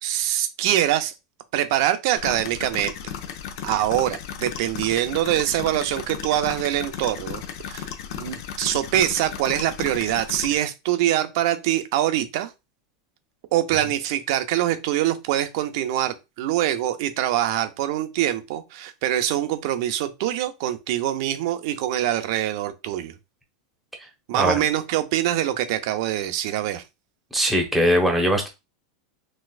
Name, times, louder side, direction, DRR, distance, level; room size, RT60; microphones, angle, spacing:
voice 1, 0.0-1.1 1.5-2.9 3.6-7.4 7.7-12.5 13.5-23.1 24.3-26.8, right 12 dB, 60° right, 0.5 m, -24 dB
sound 1, 2.2-10.6, left 8 dB, 65° left, 0.6 m, -35 dB
voice 2, 24.3-24.6 27.3-28.5, equal, 5° right, 0.9 m, -20 dB
4.1 x 2.4 x 2.4 m
supercardioid pair, 135°, 2 cm